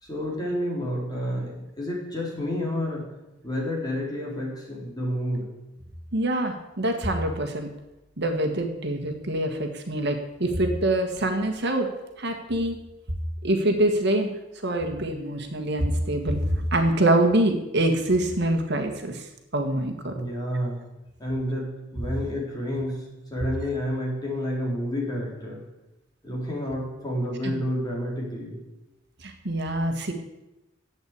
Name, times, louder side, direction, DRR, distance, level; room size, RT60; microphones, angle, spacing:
voice 1, 0.0-3.1 3.4-5.5 20.1-20.8 21.2-23.0 23.3-25.6 26.2-28.6, equal, 20° left, -3 dB, 4.3 m, -29 dB
voice 2, 6.1-7.7 8.2-11.9 12.2-12.8 13.4-14.3 14.6-20.1 27.4-27.5 29.2-30.1, right 1 dB, 60° right, 5 dB, 1.7 m, -25 dB
12.0 x 8.4 x 8.6 m, 0.96 s
head